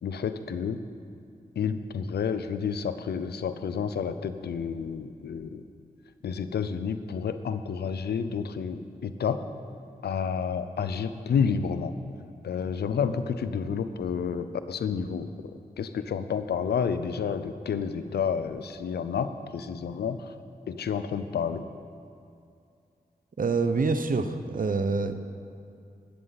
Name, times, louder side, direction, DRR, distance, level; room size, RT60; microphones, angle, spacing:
voice 1, 0.0-0.8 1.6-5.6 6.2-9.4 10.0-11.9 12.4-20.3 20.7-21.6, left 6 dB, 90° left, 11 dB, 0.6 m, -30 dB
voice 2, 23.4-25.1, right 4 dB, 55° right, 9 dB, 0.9 m, -26 dB
15.5 x 13.0 x 4.2 m, 2.5 s
cardioid pair, 40°, 16 cm